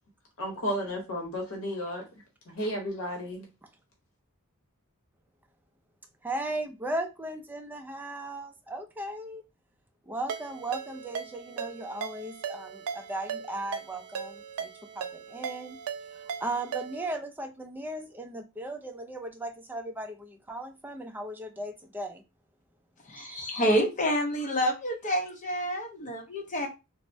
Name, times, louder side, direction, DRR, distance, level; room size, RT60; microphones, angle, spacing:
voice 1, 0.4-2.0 2.5-3.4, equal, 65° left, 0.8 m, -33 dB
voice 2, 6.2-9.4 10.1-12.7 13.1-14.3 15.0-15.1 15.3-15.7 16.4-20.1 20.5-22.1 23.2-23.4, right 1 dB, 10° right, 0.3 m, -36 dB
Ringtone, 10.3-17.2, right 7 dB, 85° right, 0.3 m, -38 dB
voice 3, 23.1-26.7, equal, 35° left, 0.7 m, -28 dB
3.2 x 2.0 x 2.5 m
head